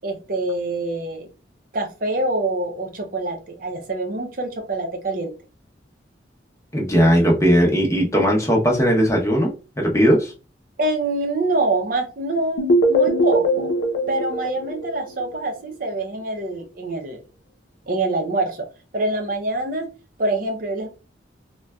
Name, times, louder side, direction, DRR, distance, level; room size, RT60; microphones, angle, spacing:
voice 1, 0.0-1.3 1.7-5.4 10.8-13.7 14.1-17.2 17.9-18.7 18.9-19.9 20.2-20.9, right 2 dB, 50° right, 4 dB, 0.6 m, -25 dB
voice 2, 6.7-10.3, equal, 15° left, 0 dB, 0.7 m, -18 dB
sound 1, 12.6-15.5, equal, 80° left, 0.6 m, -21 dB
3.8 x 2.2 x 2.3 m, 0.32 s
head